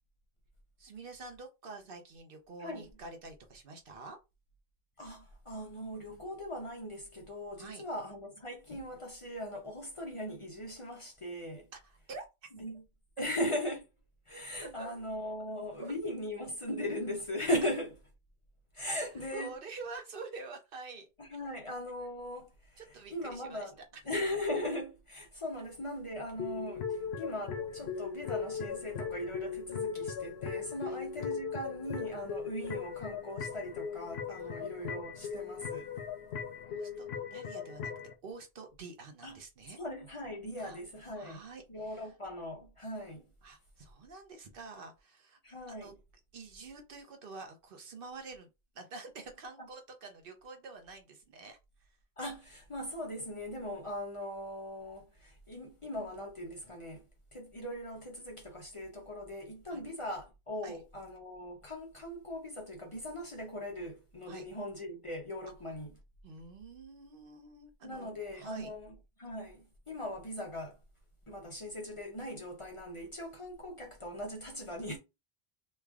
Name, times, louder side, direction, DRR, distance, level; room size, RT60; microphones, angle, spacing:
voice 1, 0.8-4.2 7.6-7.8 11.7-12.3 13.2-13.3 14.8-14.9 15.8-15.9 19.3-21.1 22.8-24.0 30.8-31.0 34.3-34.6 36.7-37.9 38.2-39.8 40.6-40.8 41.1-42.1 43.4-45.4 45.7-45.9 46.3-48.5 48.7-51.9 59.7-59.8 60.6-60.8 64.3-64.5 66.2-68.7, right 3 dB, 60° right, 0.9 m, -47 dB
voice 2, 5.0-11.7 12.6-12.8 13.2-13.9 14.3-17.9 18.7-19.5 21.2-22.8 23.1-23.8 24.0-35.9 39.2-39.4 39.8-41.4 41.7-43.3 45.4-45.9 49.6-49.7 52.2-57.0 57.3-65.9 67.8-70.8 71.3-75.0, left 1 dB, 35° left, 0.7 m, -39 dB
sound 1, 26.3-38.1, left 6 dB, 85° left, 0.9 m, -39 dB
3.2 x 2.4 x 3.4 m
omnidirectional pair, 1.1 m